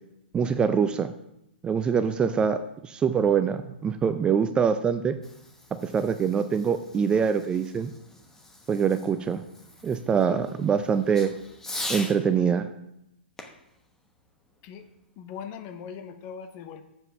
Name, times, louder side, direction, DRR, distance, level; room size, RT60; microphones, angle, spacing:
voice 1, 0.3-1.1 1.6-5.2 5.7-7.9 8.7-9.4 9.8-11.3 11.9-12.7, right 6 dB, 15° right, 10 dB, 0.4 m, -24 dB
Fireworks, 5.0-12.2 13.4-15.0, left 2 dB, 10° left, 1.1 m, -42 dB
voice 2, 15.2-16.8, left 7 dB, 35° left, 9 dB, 0.9 m, -40 dB
7.3 x 5.7 x 6.8 m, 0.83 s
hypercardioid pair, 120°, 6 cm